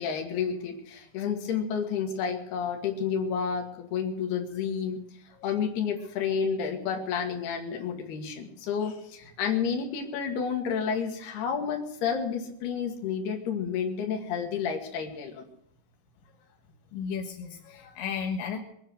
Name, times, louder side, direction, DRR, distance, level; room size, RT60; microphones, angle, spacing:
voice 1, 0.0-5.0 5.4-15.4, left 6 dB, 65° left, 3 dB, 4.1 m, -30 dB
voice 2, 16.9-18.6, left 6 dB, 80° left, 2 dB, 3.7 m, -34 dB
24.0 x 9.5 x 6.4 m, 0.76 s
omnidirectional pair, 5.2 m